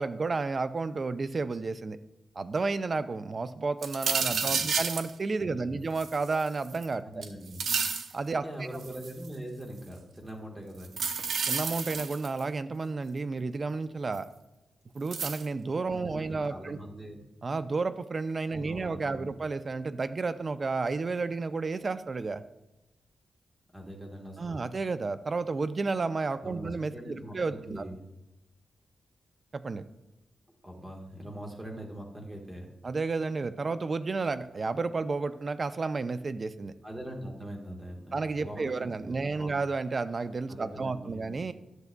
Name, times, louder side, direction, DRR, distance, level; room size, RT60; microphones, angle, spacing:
voice 1, 0.0-2.0 2.4-7.0 8.1-8.4 11.5-14.3 14.9-16.8 17.4-22.4 24.4-27.8 29.5-29.9 32.8-36.7 38.1-41.5, right 4 dB, 35° right, 12 dB, 0.3 m, -31 dB
sound 1, 3.8-5.1 6.0-6.8 7.2-8.1 8.8-9.3 10.8-12.4 14.1-14.2 15.1-15.4, right 5 dB, 80° right, 0.6 m, -31 dB
voice 2, 4.2-4.7 5.4-5.8 7.0-7.7 8.4-11.0 15.9-17.2 18.5-19.3 23.7-24.7 26.4-28.1 30.6-32.7 36.8-39.5 40.5-41.3, right 1 dB, 10° right, 0 dB, 1.3 m, -42 dB
10.5 x 6.6 x 2.2 m, 0.98 s
wide cardioid pair, 145°, 0 cm